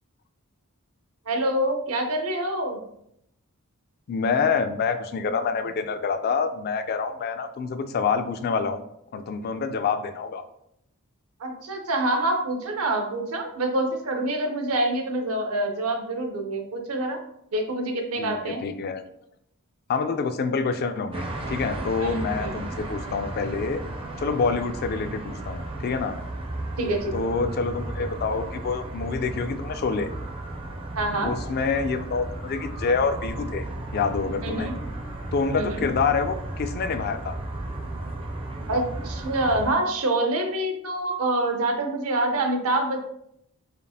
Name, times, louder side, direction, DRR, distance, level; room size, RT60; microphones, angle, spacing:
voice 1, 1.3-2.8 11.4-17.2 17.5-18.6 22.0-22.5 26.8-27.3 30.9-31.3 34.4-34.7 35.5-35.8 38.7-43.0, right 1 dB, 80° right, 4 dB, 0.7 m, -26 dB
voice 2, 4.1-10.4 18.2-19.0 19.9-23.8 24.2-26.2 27.1-30.1 31.2-33.7 33.9-34.7 35.3-37.4, left 5 dB, 45° left, 9 dB, 0.3 m, -27 dB
sound 1, 21.1-39.7, right 1 dB, 25° right, 0.4 m, -34 dB
5.1 x 2.4 x 2.7 m, 0.75 s
head